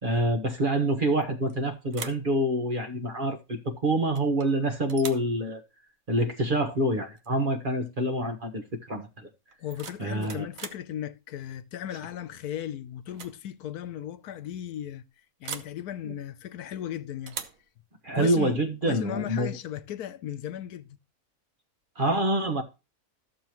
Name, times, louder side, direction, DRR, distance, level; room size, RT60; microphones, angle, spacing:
voice 1, 0.0-5.6 6.1-9.3 10.0-10.5 16.0-16.1 18.0-19.5 22.0-22.6, right 1 dB, 35° right, 1.4 m, -26 dB
sound 1, 1.2-1.6 1.9-2.3 4.1-4.5 4.9-5.3 7.2-7.3 7.7-8.0 9.5-10.9 12.4-12.7 13.0-13.4 13.6-13.7 15.4-15.8 17.3-17.7, right 7 dB, 65° right, 1.3 m, -41 dB
voice 2, 9.6-15.0 15.4-17.4 18.1-21.0, left 10 dB, 85° left, 1.3 m, -36 dB
13.5 x 7.1 x 3.0 m
omnidirectional pair, 1.6 m